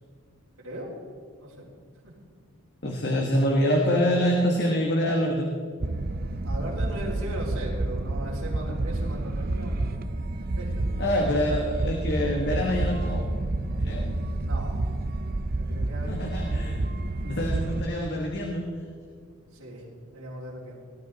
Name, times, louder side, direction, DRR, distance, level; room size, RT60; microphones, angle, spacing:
voice 1, 2.8-5.5 11.0-13.3 13.8-14.2 16.1-16.8 17.2-18.7, equal, 50° left, 0 dB, 1.3 m, -25 dB
sound 1, 5.8-17.8, right 2 dB, 40° right, 0.7 m, -29 dB
voice 2, 6.4-9.8 10.4-11.0 14.4-14.8 15.6-16.4 19.5-19.8 20.1-20.8, right 1 dB, 80° right, -6 dB, 3.6 m, -38 dB
19.0 x 12.0 x 4.0 m, 2.1 s
head